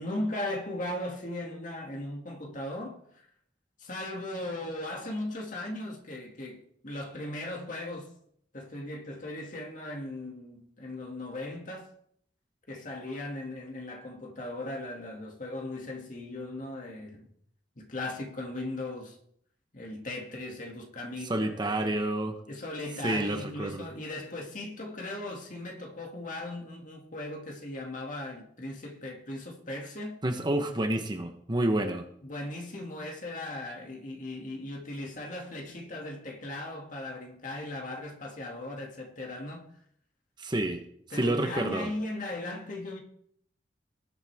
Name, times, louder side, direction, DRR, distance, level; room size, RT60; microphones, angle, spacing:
voice 1, 0.0-3.3 3.8-8.1 8.5-11.9 12.7-17.3 17.8-19.2 19.7-22.0 22.5-30.2 32.2-39.7 41.1-43.0, left 1 dB, 45° left, 2.3 m, -38 dB
voice 2, 21.2-22.3 23.0-23.9 30.2-32.0 40.4-40.8 41.1-41.9, right 1 dB, 25° right, 1.0 m, -29 dB
19.5 x 8.1 x 3.6 m
head